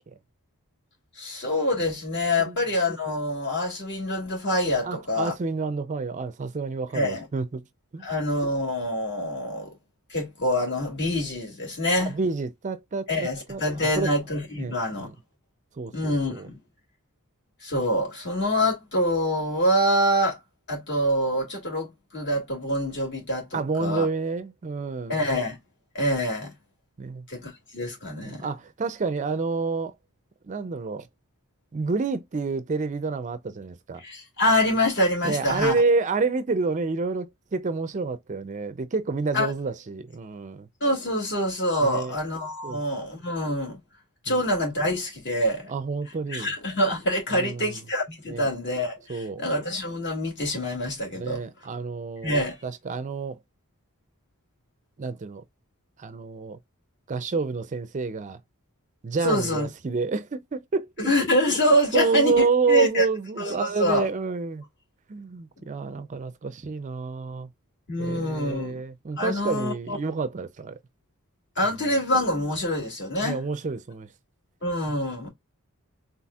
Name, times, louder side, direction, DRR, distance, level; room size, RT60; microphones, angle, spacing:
voice 1, 1.2-5.4 6.9-7.3 8.0-9.7 10.1-12.1 13.1-15.1 15.9-16.6 17.6-20.4 20.7-24.1 25.1-25.6 25.9-26.5 27.3-28.5 34.0-35.7 39.3-39.5 40.8-43.8 44.2-45.7 46.3-51.4 52.2-52.6 59.2-59.7 61.0-63.1 63.4-64.1 67.9-68.8 69.2-70.0 71.6-73.4 74.6-75.3, equal, 55° left, 2.4 m, -25 dB
voice 2, 4.8-7.6 7.9-8.1 12.0-14.1 14.6-15.1 15.8-16.5 23.5-25.2 27.0-27.2 28.2-29.9 30.4-31.1 31.7-34.0 35.2-40.7 41.8-42.2 42.6-42.8 44.3-44.4 45.7-46.5 47.4-47.8 48.3-48.5 49.1-49.4 51.1-52.3 52.6-53.4 55.0-55.4 56.0-56.6 57.1-58.4 59.0-61.1 61.9-64.6 65.1-67.5 68.0-70.8 73.2-74.1, right 4 dB, 35° right, 0.4 m, -29 dB
4.2 x 3.8 x 2.3 m
head